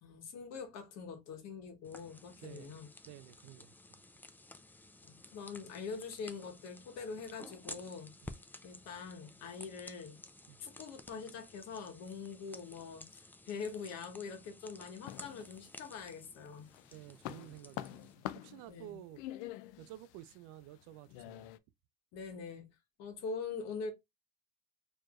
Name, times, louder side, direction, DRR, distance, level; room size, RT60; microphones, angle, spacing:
voice 1, 0.0-2.9 5.0-8.4 8.6-10.2 10.6-16.7 18.7-19.0 22.1-22.7 23.0-23.9, left 5 dB, 60° left, 1.4 m, -44 dB
sound 1, 1.8-18.1, left 2 dB, 5° left, 0.3 m, -54 dB
voice 2, 2.4-4.0 8.2-8.4 10.5-10.6 16.9-19.2 19.8-21.5, right 14 dB, 90° right, 0.5 m, -52 dB
sound 2, 15.1-16.1 16.5-21.6, left 14 dB, 85° left, 0.5 m, -46 dB
4.5 x 3.1 x 2.4 m
cardioid pair, 120°, 29 cm